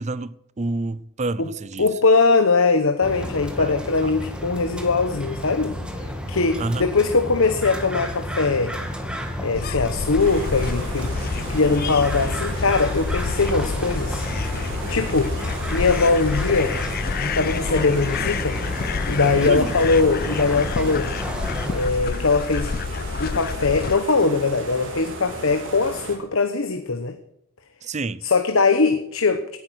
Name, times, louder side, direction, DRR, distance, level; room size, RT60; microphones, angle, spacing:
voice 1, 0.0-1.9 3.6-3.7 4.0-4.1 6.6-6.9 19.4-19.8 27.8-28.3, right 2 dB, 35° right, 0.6 m, -28 dB
voice 2, 1.8-5.7 6.3-8.7 9.4-11.1 11.5-14.3 14.9-15.3 15.7-16.8 17.2-18.6 19.1-21.1 21.7-22.7 23.2-27.2 28.2-29.6, left 4 dB, 70° left, 1.0 m, -21 dB
sound 1, 3.0-21.9, equal, 5° right, 2.0 m, -32 dB
sound 2, 9.5-24.0, left 5 dB, 45° left, 0.5 m, -29 dB
sound 3, 10.2-26.2, right 2 dB, 60° right, 3.7 m, -35 dB
17.0 x 9.9 x 6.3 m
head